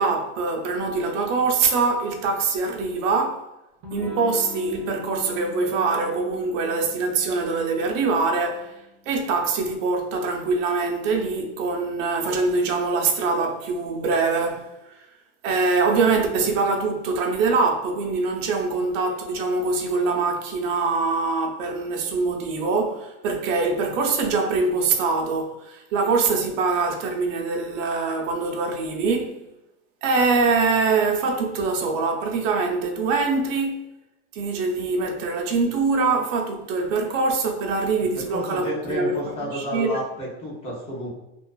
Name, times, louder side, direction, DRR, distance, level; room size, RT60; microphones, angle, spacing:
voice 1, 0.0-3.4 3.9-8.7 9.1-14.7 15.4-29.4 30.0-33.8 34.3-40.0, right 4 dB, 85° right, 0.6 m, -23 dB
Electric guitar / Strum, 3.8-9.2, left 5 dB, 30° right, 0.4 m, -42 dB
voice 2, 38.3-41.1, equal, 15° left, 0.5 m, -31 dB
2.4 x 2.4 x 2.3 m
supercardioid pair, 160°, 37 cm